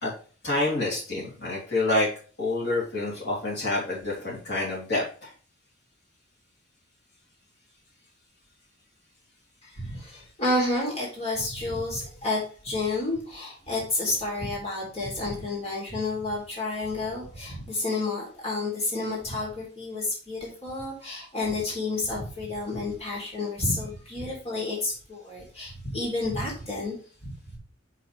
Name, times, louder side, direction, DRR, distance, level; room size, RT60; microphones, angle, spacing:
voice 1, 0.4-2.1 2.4-5.3, left 2 dB, 60° left, -4 dB, 3.3 m, -27 dB
voice 2, 9.6-27.0 27.2-27.6, left 2 dB, 30° left, -4 dB, 3.3 m, -30 dB
7.7 x 5.8 x 3.3 m, 0.40 s
head